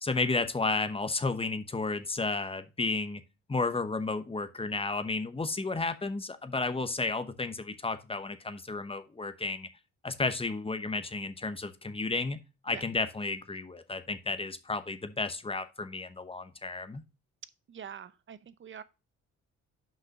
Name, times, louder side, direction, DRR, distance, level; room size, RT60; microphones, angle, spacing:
voice 1, 0.0-3.2 3.5-9.7 10.0-12.4 12.6-17.0, left 3 dB, 20° left, 0.9 m, -32 dB
voice 2, 17.7-18.8, right 8 dB, 40° right, 0.7 m, -45 dB
5.9 x 5.6 x 5.2 m
cardioid pair, 90°, 30 cm